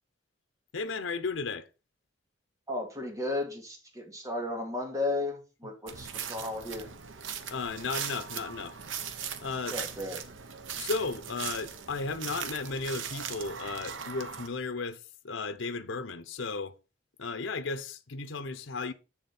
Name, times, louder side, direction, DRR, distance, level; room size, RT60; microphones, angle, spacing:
voice 1, 0.7-1.7 7.5-8.8 9.4-9.8 10.8-16.8 17.2-18.9, left 4 dB, 90° left, 0.8 m, -34 dB
voice 2, 2.7-6.9 9.7-10.2, left 2 dB, 20° right, 2.3 m, -34 dB
sound 1, 5.9-14.5, right 7 dB, 85° right, 1.0 m, -39 dB
7.3 x 7.3 x 4.3 m
head